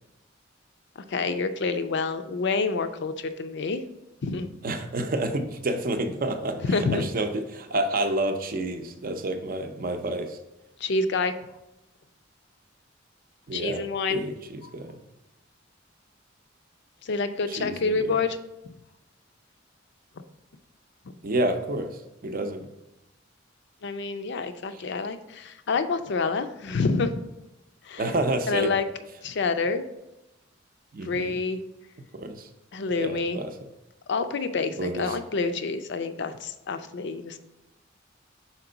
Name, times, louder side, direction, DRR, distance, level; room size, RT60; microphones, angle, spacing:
voice 1, 1.1-3.8 4.2-4.5 6.7-7.1 10.8-11.3 13.5-14.2 17.0-18.4 23.8-27.2 27.9-28.0 28.5-28.9 29.2-29.8 31.0-31.6 32.7-33.4 34.1-37.4, left 4 dB, 60° left, 9 dB, 0.5 m, -27 dB
voice 2, 4.6-10.4 13.5-13.8 14.1-15.0 17.5-18.1 21.2-21.9 22.2-22.7 24.7-24.8 28.0-28.7 30.9-31.4 32.1-32.5 33.0-33.5 34.8-35.2, right 2 dB, 45° right, 7 dB, 0.6 m, -29 dB
5.8 x 4.3 x 3.8 m, 0.95 s
head